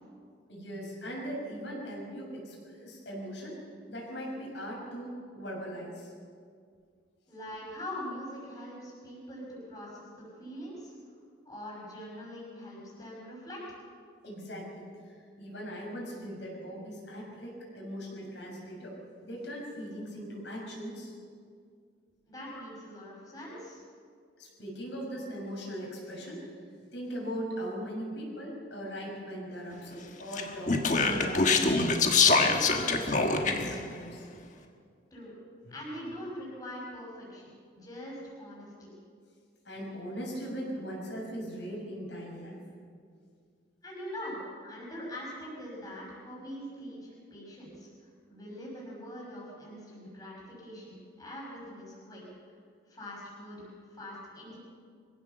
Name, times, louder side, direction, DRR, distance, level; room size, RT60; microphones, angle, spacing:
voice 1, 0.5-3.6 3.9-6.1 14.2-18.9 19.2-21.1 22.5-22.6 24.4-26.5 26.9-31.7 32.2-34.2 35.3-35.7 39.6-42.6, equal, 75° left, -2 dB, 6.2 m, -40 dB
voice 2, 7.3-10.9 11.4-13.8 22.3-23.8 35.1-35.3 35.7-38.9 43.8-44.4 44.6-47.9 48.3-52.2 52.9-54.6, equal, 20° left, -4 dB, 5.9 m, -43 dB
Speech, 30.3-33.8, left 4 dB, 40° left, 1.5 m, -24 dB
23.5 x 16.0 x 7.0 m, 2.2 s
head